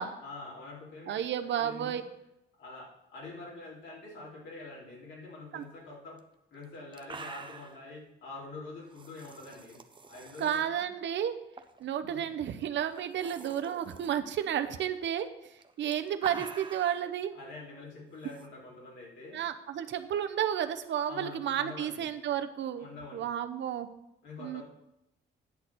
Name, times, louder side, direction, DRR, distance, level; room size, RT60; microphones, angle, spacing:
voice 1, 0.2-1.9 2.6-6.2 6.5-9.8 10.1-10.9 12.0-12.3 17.3-19.4 21.1-22.1 22.8-23.4 24.2-24.6, left 3 dB, 70° left, -5 dB, 4.0 m, -46 dB
voice 2, 1.1-2.0 5.5-5.6 10.4-11.4 11.8-15.3 15.8-17.3 19.3-22.9 23.1-23.9 24.4-24.6, right 9 dB, 65° right, 9 dB, 0.8 m, -32 dB
sound 1, 6.2-6.3 6.6-6.7 6.9-7.8 8.9-10.6 11.5-11.8 12.1-12.2 12.9-14.1 15.5-17.1 18.2-18.5, right 4 dB, 25° right, 0.8 m, -46 dB
10.0 x 4.2 x 7.6 m, 0.86 s
cardioid pair, 90°, 20 cm